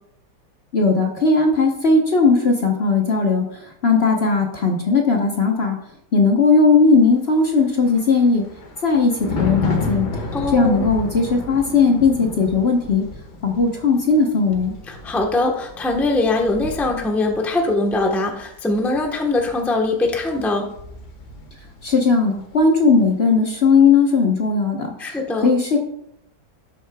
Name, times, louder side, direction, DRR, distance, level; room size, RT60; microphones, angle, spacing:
voice 1, 0.7-5.8 6.1-8.4 8.8-10.1 10.5-13.1 13.4-14.7 21.8-25.2 25.4-25.8, left 4 dB, 45° left, 1 dB, 1.1 m, -17 dB
Thunder, 7.4-22.0 22.3-22.6, left 2 dB, 75° left, 2.1 m, -32 dB
voice 2, 10.3-10.9 14.9-20.7 25.0-25.5, left 2 dB, ahead, 2 dB, 0.8 m, -22 dB
11.0 x 8.1 x 2.3 m, 0.76 s
omnidirectional pair, 1.8 m